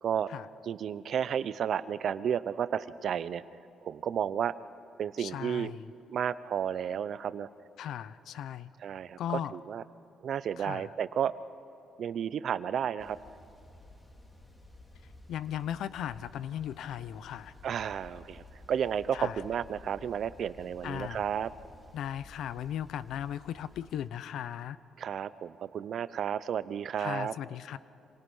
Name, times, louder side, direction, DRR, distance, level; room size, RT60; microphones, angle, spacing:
voice 1, 0.6-3.4 3.8-4.5 5.0-5.7 6.1-7.5 8.8-9.8 10.2-11.3 12.0-13.2 17.6-21.5 25.0-27.3, right 8 dB, 60° right, 15 dB, 0.7 m, -32 dB
voice 2, 5.2-5.8 7.8-8.7 9.2-9.5 10.6-10.9 15.3-17.5 19.1-19.4 20.8-21.2 21.9-24.8 27.0-27.8, left 10 dB, 75° left, 16 dB, 0.7 m, -37 dB
sound 1, 13.0-24.1, left 2 dB, 20° left, 2.9 m, -54 dB
27.5 x 26.5 x 5.6 m, 3.0 s
cardioid pair, 90°, 0 cm